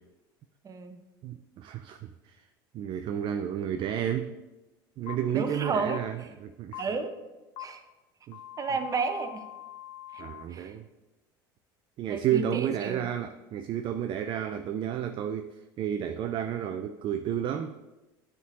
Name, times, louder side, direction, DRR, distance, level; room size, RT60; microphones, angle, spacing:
voice 1, 0.6-1.0 5.3-6.0 6.8-7.1 7.6-7.8 8.6-9.4 10.1-10.7 12.1-13.0, right 4 dB, 30° right, 7 dB, 0.8 m, -32 dB
voice 2, 1.2-2.5 2.7-4.4 5.0-6.8 8.3-8.4 10.2-10.9 12.0-17.7, right 10 dB, 45° right, 8 dB, 0.4 m, -31 dB
sound 1, 5.1-5.2 5.9-6.0 6.7-6.8 7.6-7.7 8.3-10.4, left 13 dB, 50° left, 0.8 m, -43 dB
9.3 x 3.6 x 4.0 m, 1.1 s
hypercardioid pair, 85°, 12 cm